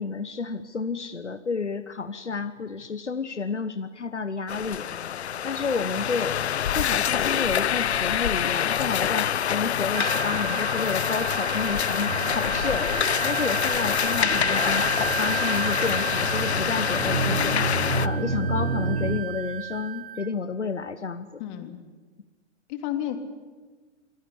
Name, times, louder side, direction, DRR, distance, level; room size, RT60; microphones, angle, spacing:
voice 1, 0.0-4.9 5.4-6.4 6.7-14.8 15.2-17.6 18.0-21.4, left 5 dB, 85° left, 11 dB, 1.2 m, -30 dB
sound 1, 4.5-18.1, left 9 dB, 70° left, 0.9 m, -26 dB
Wind instrument woodwind instrument, 9.9-20.3, right 13 dB, 50° right, 0.7 m, -33 dB
sound 2, 12.0-19.2, right 3 dB, 90° right, 1.6 m, -31 dB
voice 2, 21.4-21.8 22.7-23.2, left 12 dB, 40° left, 7 dB, 3.3 m, -31 dB
28.0 x 21.5 x 8.6 m, 1.3 s
figure-of-eight pair, 110°, 34 cm